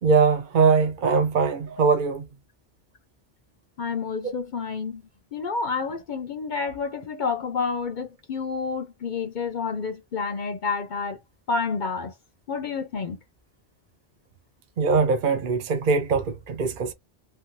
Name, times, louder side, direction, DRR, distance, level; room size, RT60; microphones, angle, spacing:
voice 1, 0.0-2.3 14.8-16.9, right 5 dB, 55° right, 0.7 m, -21 dB
voice 2, 3.8-5.0 5.3-11.2 11.5-12.1 12.5-13.2, left 5 dB, 55° left, 0.6 m, -29 dB
3.0 x 2.2 x 2.5 m
omnidirectional pair, 1.2 m